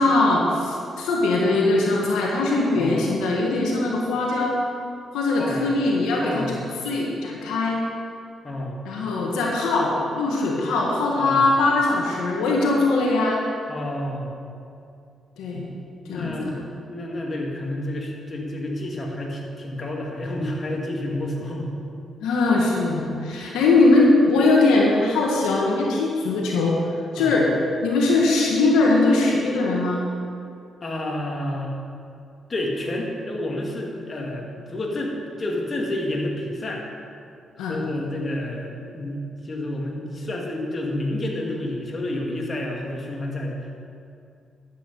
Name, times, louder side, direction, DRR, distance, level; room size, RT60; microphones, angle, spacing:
voice 1, 0.0-4.6 5.1-6.6 6.8-7.8 8.8-13.4 15.4-15.7 16.1-16.5 22.2-26.8 27.1-27.5 27.8-30.0 37.6-37.8, left 2 dB, 90° left, -2 dB, 1.5 m, -21 dB
voice 2, 5.4-5.7 6.2-6.6 8.4-8.8 11.2-11.5 13.7-14.3 16.1-16.6 16.9-21.8 27.2-27.3 30.8-31.7 32.5-36.8 37.6-43.8, left 1 dB, 40° left, -1 dB, 2.3 m, -29 dB
11.5 x 8.3 x 5.4 m, 2.4 s
supercardioid pair, 65°, 0 cm